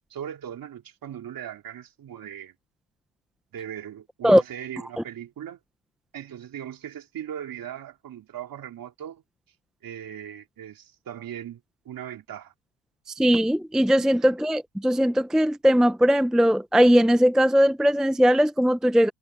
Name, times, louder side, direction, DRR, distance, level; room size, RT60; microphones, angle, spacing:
voice 1, 0.1-2.5 3.5-5.6 6.1-9.2 9.8-12.5 14.2-14.3, right 10 dB, 45° right, 2.9 m, -39 dB
voice 2, 13.2-19.1, equal, ahead, 0.6 m, -19 dB
cardioid pair, 110°, 47 cm